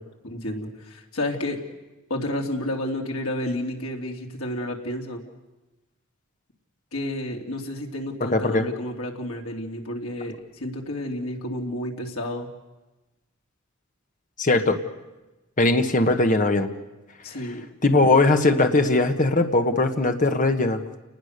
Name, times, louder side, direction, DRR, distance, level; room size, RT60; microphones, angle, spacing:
voice 1, 0.2-1.6 2.1-5.2 6.9-12.5 17.2-17.6, left 1 dB, 80° left, 1 dB, 3.2 m, -31 dB
voice 2, 8.3-8.6 14.4-14.8 15.6-16.7 17.8-20.8, left 2 dB, 40° left, 7 dB, 1.4 m, -20 dB
29.5 x 20.0 x 6.7 m, 1.1 s
head